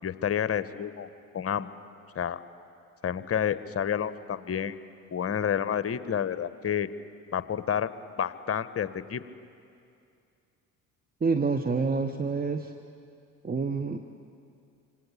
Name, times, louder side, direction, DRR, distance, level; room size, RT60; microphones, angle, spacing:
voice 1, 0.0-1.1 1.3-1.7 2.1-2.4 3.0-4.8 5.1-6.9 7.3-7.9 8.2-9.2, left 8 dB, 35° left, 14 dB, 1.1 m, -29 dB
voice 2, 11.2-12.7 13.4-14.0, right 4 dB, 20° right, 7 dB, 1.2 m, -27 dB
26.5 x 26.0 x 8.5 m, 2.5 s
figure-of-eight pair, 55°, 42 cm